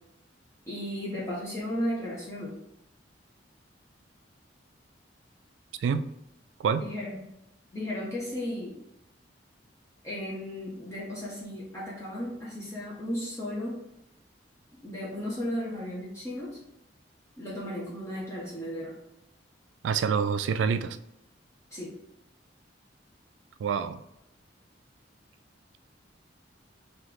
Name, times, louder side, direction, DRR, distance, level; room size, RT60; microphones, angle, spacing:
voice 1, 0.7-2.6 6.8-7.2 7.7-8.7 10.0-13.8 14.8-16.6 17.4-18.9 21.7-21.9, equal, 15° left, -7 dB, 0.8 m, -35 dB
voice 2, 19.8-21.0 23.6-24.0, right 6 dB, 80° right, 11 dB, 0.3 m, -26 dB
3.1 x 2.9 x 4.0 m, 0.83 s
head